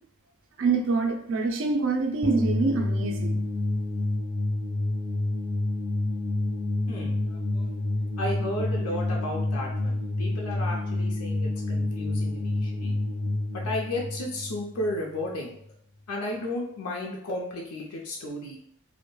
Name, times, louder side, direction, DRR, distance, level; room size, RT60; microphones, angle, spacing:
voice 1, 0.6-3.4, right 3 dB, 60° right, 4 dB, 0.4 m, -25 dB
sound 1, 2.2-15.3, left 2 dB, 35° left, 0.4 m, -29 dB
voice 2, 6.9-7.7 8.2-12.9 13.5-15.6 16.1-18.6, left 1 dB, 90° left, -2 dB, 0.5 m, -34 dB
2.2 x 2.1 x 3.0 m, 0.69 s
head